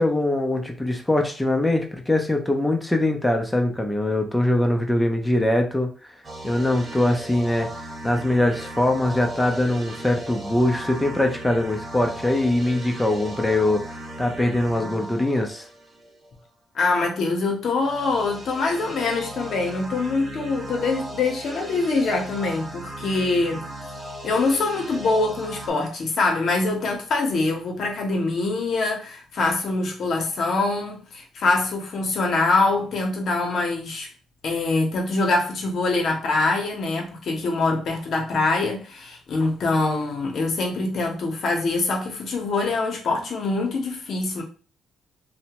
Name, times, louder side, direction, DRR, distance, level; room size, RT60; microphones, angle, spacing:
voice 1, 0.0-5.9 6.4-7.7 8.0-15.7, left 1 dB, 10° left, 0.5 m, -22 dB
sound 1, 6.2-16.3 17.7-25.7, right 1 dB, 25° right, 1.0 m, -37 dB
voice 2, 16.7-23.6 24.2-34.1 34.4-44.4, left 3 dB, 60° left, 0.8 m, -24 dB
2.7 x 2.1 x 2.9 m
cardioid pair, 90°, 0 cm